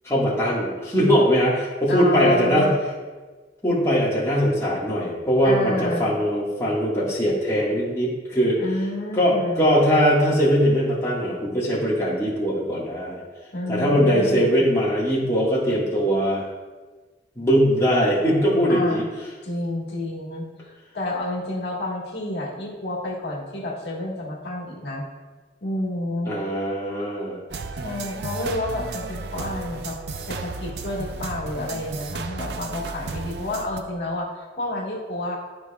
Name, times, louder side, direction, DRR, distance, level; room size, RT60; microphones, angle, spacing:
voice 1, 0.0-2.7 3.6-8.6 9.1-13.2 13.7-16.4 17.3-19.0 26.3-27.4, equal, 15° left, -8 dB, 1.6 m, -21 dB
voice 2, 1.9-2.7 5.4-6.1 8.6-9.7 13.5-14.4 18.7-19.1 19.4-25.0 25.6-26.3 27.8-30.0 30.2-35.4, left 1 dB, 70° left, -3 dB, 1.5 m, -30 dB
sound 1, 27.5-33.8, right 4 dB, 65° right, 0.5 m, -33 dB
12.0 x 5.0 x 2.3 m, 1.3 s
head